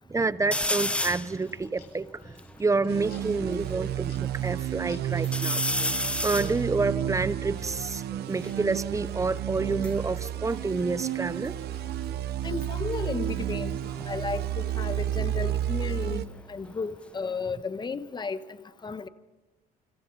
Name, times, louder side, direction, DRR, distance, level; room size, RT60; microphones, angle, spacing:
voice 1, 0.1-2.3 2.6-5.6 6.2-11.5, right 3 dB, 20° right, 0.9 m, -28 dB
sound 1, 0.5-1.3 1.9-2.0 2.2-3.7 4.2-4.8 5.2-8.6 9.5-11.5 11.7-12.2 13.8-16.4 16.8-17.6, left 1 dB, 5° left, 1.1 m, -34 dB
sound 2, 1.2-6.8, left 7 dB, 70° left, 7.9 m, -57 dB
sound 3, 2.9-16.3, right 12 dB, 75° right, 1.0 m, -31 dB
voice 2, 12.4-18.6 18.8-19.1, left 4 dB, 25° left, 1.5 m, -34 dB
29.5 x 26.0 x 4.2 m
cardioid pair, 110°, 17 cm